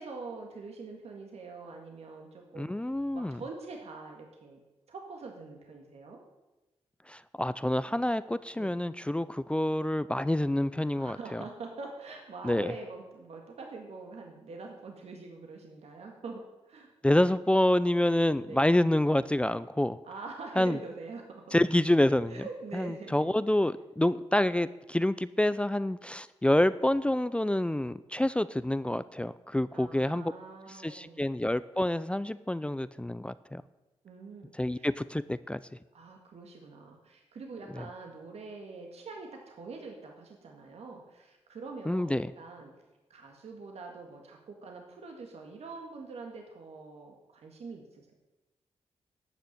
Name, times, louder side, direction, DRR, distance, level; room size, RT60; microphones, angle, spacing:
voice 1, 0.0-2.8 3.1-4.6 4.9-6.2 8.6-8.8 10.9-16.9 18.4-18.7 20.0-21.6 22.0-23.1 29.7-31.3 34.0-34.9 35.9-42.7 43.1-48.1, right 4 dB, 70° right, 2 dB, 1.9 m, -44 dB
voice 2, 2.5-3.4 7.1-11.4 12.4-12.7 17.0-20.0 20.6-20.8 21.5-22.3 22.7-30.3 30.7-33.6 34.5-35.6 37.7-37.8 41.9-42.3, left 1 dB, 10° left, 15 dB, 0.5 m, -27 dB
11.5 x 6.7 x 8.8 m, 1.1 s
cardioid pair, 55°, 11 cm